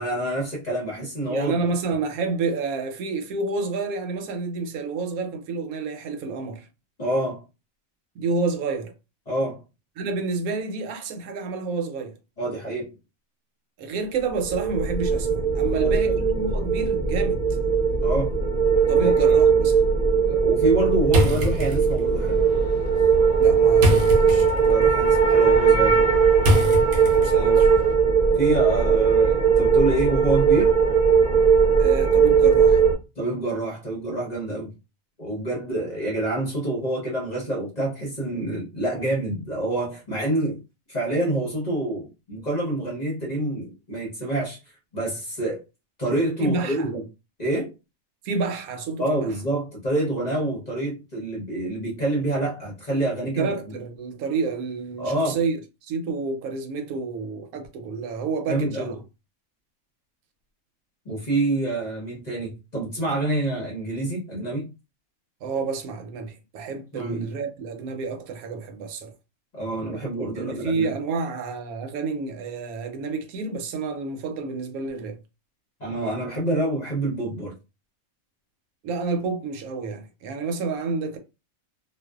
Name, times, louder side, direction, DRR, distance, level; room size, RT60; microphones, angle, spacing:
voice 1, 0.0-1.6 7.0-7.4 9.3-9.6 12.4-12.9 15.7-16.2 18.0-18.3 19.0-19.4 20.2-22.4 24.6-26.1 27.3-27.6 28.3-30.8 33.2-34.7 35.2-40.6 40.9-44.6 44.9-45.6 46.0-47.0 47.4-47.7 49.0-53.5 55.0-55.4 58.5-58.9 61.0-64.7 66.9-67.3 69.5-70.9 75.8-77.6, right 1 dB, 40° left, 0.7 m, -27 dB
voice 2, 1.3-6.7 8.2-8.9 10.0-12.2 13.8-17.4 18.9-19.8 23.4-24.5 27.1-28.0 31.8-32.8 46.4-46.9 48.2-49.3 53.4-59.0 65.4-69.1 70.4-75.2 78.8-81.2, right 4 dB, 85° right, 1.0 m, -29 dB
sound 1, 14.3-32.9, right 6 dB, 35° right, 0.9 m, -19 dB
sound 2, 21.1-27.6, left 1 dB, 60° right, 0.8 m, -27 dB
2.5 x 2.2 x 2.3 m
omnidirectional pair, 1.5 m